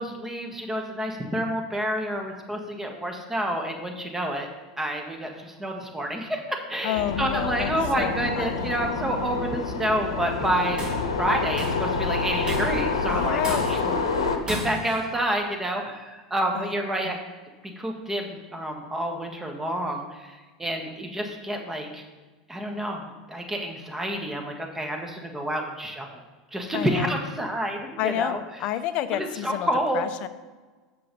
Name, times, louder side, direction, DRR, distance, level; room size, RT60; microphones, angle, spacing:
voice 1, 0.0-4.5 4.8-10.8 11.2-17.2 17.6-22.0 22.5-26.2 26.5-28.4 29.1-30.0, right 1 dB, 10° right, 2 dB, 1.6 m, -29 dB
voice 2, 6.8-7.7 8.0-8.9 13.1-13.7 16.5-16.7 17.0-17.1 26.7-27.1 28.0-29.7 29.9-30.3, left 12 dB, 50° left, 13 dB, 0.5 m, -30 dB
sound 1, 6.9-14.4, left 4 dB, 85° left, 0.9 m, -28 dB
Tools, 10.5-11.1 11.6-11.9 12.5-12.9 13.4-14.0 14.5-15.0, equal, 30° right, 2.8 m, -34 dB
6.7 x 6.7 x 5.3 m, 1.3 s
hypercardioid pair, 85°, 3 cm